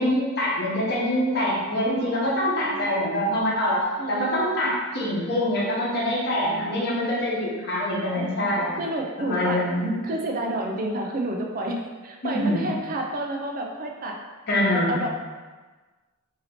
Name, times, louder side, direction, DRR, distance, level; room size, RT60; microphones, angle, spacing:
voice 1, 0.0-3.8 4.1-8.8 9.2-9.9 12.2-12.7 14.5-15.0, left 1 dB, 45° left, -5 dB, 0.9 m, -24 dB
voice 2, 1.8-2.9 4.0-4.8 6.5-7.0 8.1-8.2 8.7-9.6 10.0-14.2 14.7-15.1, right 1 dB, 40° right, 1 dB, 0.4 m, -30 dB
2.8 x 2.7 x 4.2 m, 1.3 s
head